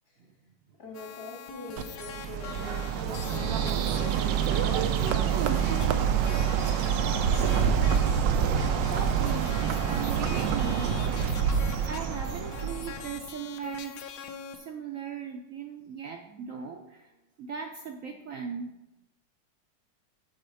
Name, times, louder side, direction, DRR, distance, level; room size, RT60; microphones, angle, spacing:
voice 1, 0.8-7.1, left 2 dB, 55° left, -1 dB, 2.3 m, -45 dB
sound 1, 0.9-14.6, left 7 dB, 85° left, 1.4 m, -43 dB
Bird, 1.8-13.2, right 8 dB, 85° right, 1.3 m, -26 dB
voice 2, 8.9-10.9 11.2-14.1 14.5-17.1 17.4-18.7, right 6 dB, 65° right, 3 dB, 0.9 m, -38 dB
7.5 x 4.3 x 6.3 m, 0.97 s
omnidirectional pair, 1.9 m